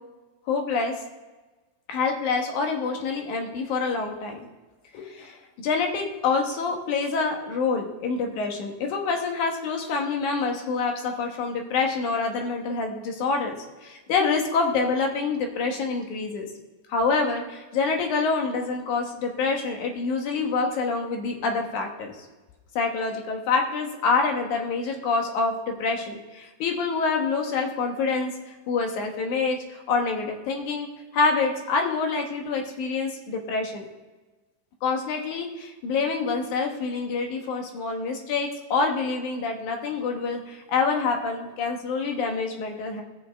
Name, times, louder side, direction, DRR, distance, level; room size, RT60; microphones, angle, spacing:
voice 1, 0.5-0.9 1.9-4.4 4.9-13.5 13.8-16.5 16.9-22.3 22.8-30.9 31.1-33.8 34.8-43.0, left 4 dB, 85° left, 3 dB, 2.7 m, -26 dB
17.0 x 6.8 x 3.4 m, 1.2 s
omnidirectional pair, 3.3 m